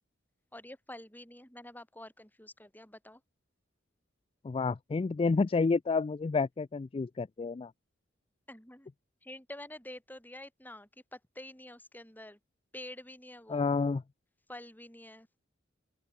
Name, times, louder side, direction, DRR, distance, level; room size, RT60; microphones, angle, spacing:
voice 1, 0.5-3.2 8.5-8.9 9.2-12.4 12.7-13.7 14.5-15.3, left 1 dB, 10° left, 7.4 m, -48 dB
voice 2, 4.4-7.7 13.5-14.0, left 4 dB, 30° left, 0.3 m, -29 dB
open air
head